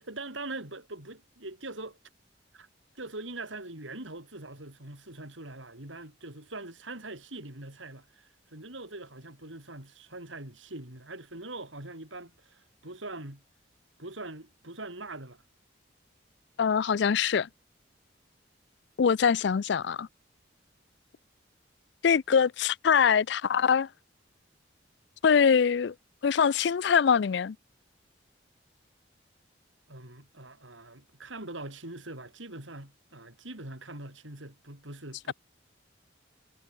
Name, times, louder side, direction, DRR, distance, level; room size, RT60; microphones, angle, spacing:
voice 1, 0.0-2.0 2.5-2.7 2.9-13.4 14.0-15.4 29.9-35.3, right 2 dB, 85° right, 6.2 m, -42 dB
voice 2, 16.6-17.5 19.0-20.1 22.0-23.9 25.2-25.9 26.2-27.6, left 6 dB, 65° left, 0.4 m, -23 dB
head